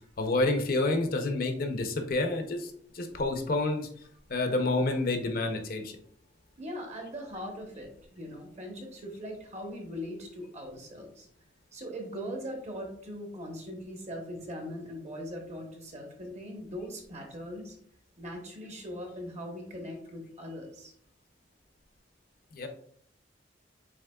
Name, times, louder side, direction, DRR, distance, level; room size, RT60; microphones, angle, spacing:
voice 1, 0.2-3.9 4.3-6.0 22.5-22.7, left 2 dB, 55° left, 6 dB, 0.6 m, -29 dB
voice 2, 6.6-11.3 11.7-17.8 18.2-20.9, equal, 40° right, 2 dB, 1.1 m, -40 dB
7.1 x 3.0 x 2.3 m, 0.63 s
head